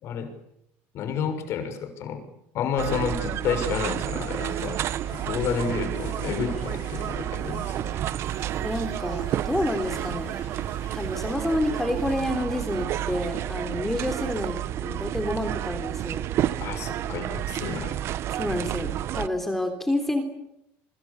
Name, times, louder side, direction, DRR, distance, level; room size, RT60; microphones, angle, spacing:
voice 1, 0.0-0.3 0.9-4.8 5.1-7.9 8.2-8.3 16.6-18.0, left 6 dB, 50° left, 8 dB, 6.3 m, -30 dB
sound 1, 2.8-19.3, right 12 dB, 45° right, 1.0 m, -30 dB
sound 2, 4.5-12.2, left 9 dB, 85° left, 7.2 m, -51 dB
voice 2, 8.6-10.4 10.9-16.3 18.3-20.2, left 1 dB, 5° left, 5 dB, 3.5 m, -29 dB
29.0 x 24.5 x 7.1 m, 0.78 s
cardioid pair, 140°, 6 cm